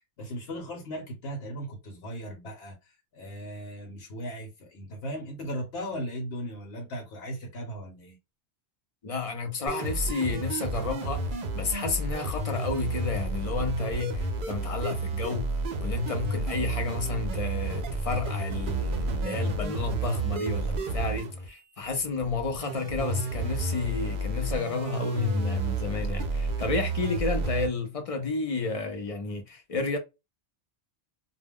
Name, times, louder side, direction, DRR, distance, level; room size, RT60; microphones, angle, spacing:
voice 1, 0.2-2.8 3.1-8.2, equal, 70° left, 1.0 m, -37 dB
voice 2, 9.0-30.0, left 4 dB, 40° left, 0.5 m, -31 dB
sound 1, 9.7-27.7, right 2 dB, 55° right, 0.6 m, -31 dB
2.2 x 2.1 x 3.4 m
omnidirectional pair, 1.1 m